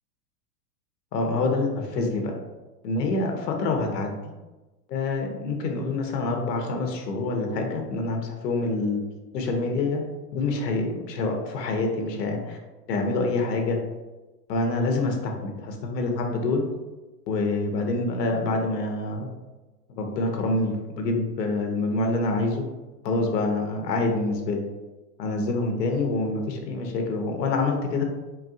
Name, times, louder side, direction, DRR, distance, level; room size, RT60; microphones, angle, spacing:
voice 1, 1.1-2.3 2.8-4.2 4.9-9.0 9.3-10.0 10.3-12.6 12.9-13.8 14.5-16.6 17.3-19.3 20.0-22.6 23.0-24.6 25.2-28.0, left 3 dB, 85° left, 3 dB, 1.1 m, -26 dB
4.5 x 2.8 x 2.6 m, 1.1 s
supercardioid pair, 180°, 48 cm